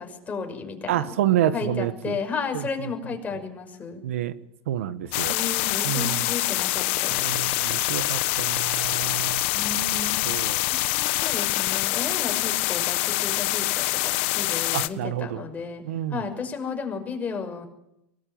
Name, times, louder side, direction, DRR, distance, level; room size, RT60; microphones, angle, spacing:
voice 1, 0.0-1.1 1.5-4.0 5.3-7.3 9.5-10.2 10.7-15.8 16.1-17.7, left 5 dB, 20° left, 4 dB, 6.0 m, -33 dB
voice 2, 0.9-2.2 4.0-4.3 4.7-5.3 5.8-6.3 7.2-9.4 10.2-10.6 14.7-15.4 15.8-16.2, right 12 dB, 85° right, 13 dB, 1.4 m, -28 dB
sound 1, 5.1-14.9, left 20 dB, 70° left, 1.3 m, -25 dB
24.0 x 19.5 x 8.9 m, 0.83 s
supercardioid pair, 115°, 7 cm